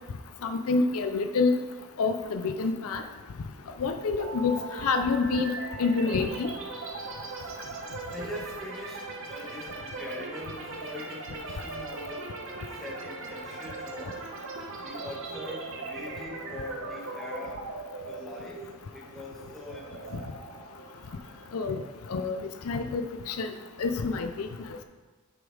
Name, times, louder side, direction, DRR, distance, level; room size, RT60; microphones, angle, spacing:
voice 1, 0.4-1.6 2.0-3.0 3.8-4.5 4.8-5.5 5.8-6.5 21.5-21.8 22.1-22.4 22.7-23.5 23.8-24.5, left 4 dB, 80° left, 7 dB, 0.5 m, -27 dB
sound 1, 4.2-21.9, right 3 dB, 65° right, 1.0 m, -40 dB
voice 2, 8.1-12.3 12.8-14.2 14.8-17.6 18.1-18.6 18.9-20.3, left 1 dB, ahead, -5 dB, 1.7 m, -42 dB
6.9 x 5.3 x 4.7 m, 1.3 s
head